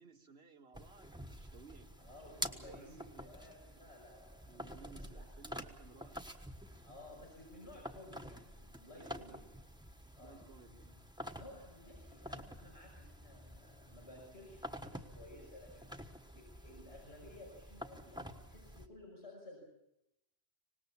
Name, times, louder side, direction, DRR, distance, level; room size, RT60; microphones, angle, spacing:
voice 1, 0.0-1.9 2.5-3.4 4.5-6.3 8.9-9.3 10.2-11.1, right 4 dB, 75° right, 5 dB, 2.0 m, -59 dB
sound 1, 0.7-18.9, equal, 5° right, 1.3 m, -49 dB
voice 2, 2.0-5.2 6.8-9.4 10.2-10.4 11.3-19.6, left 1 dB, 85° left, -3 dB, 6.3 m, -55 dB
25.5 x 19.5 x 7.2 m, 0.82 s
omnidirectional pair, 1.1 m